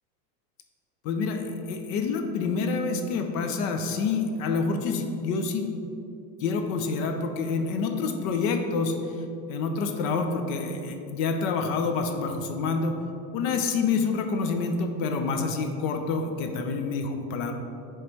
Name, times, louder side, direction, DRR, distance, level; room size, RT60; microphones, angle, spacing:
voice 1, 1.0-5.6 6.4-8.9 9.5-13.0 13.3-17.5, left 4 dB, 55° left, 5 dB, 0.8 m, -27 dB
7.6 x 3.3 x 4.4 m, 2.6 s
supercardioid pair, 115°, 49 cm